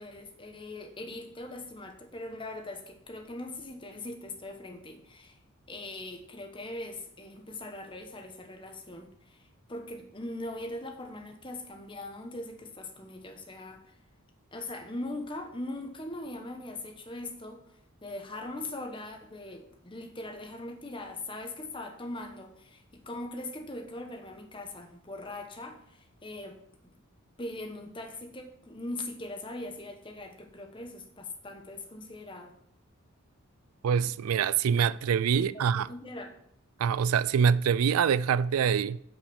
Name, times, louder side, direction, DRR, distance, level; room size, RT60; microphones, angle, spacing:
voice 1, 0.0-5.4 5.7-14.0 14.5-26.9 27.4-32.5 35.3-36.3, left 2 dB, 25° left, 1.1 m, -41 dB
voice 2, 33.8-35.9 36.8-39.0, right 7 dB, 90° right, 0.4 m, -25 dB
8.6 x 4.9 x 6.9 m
head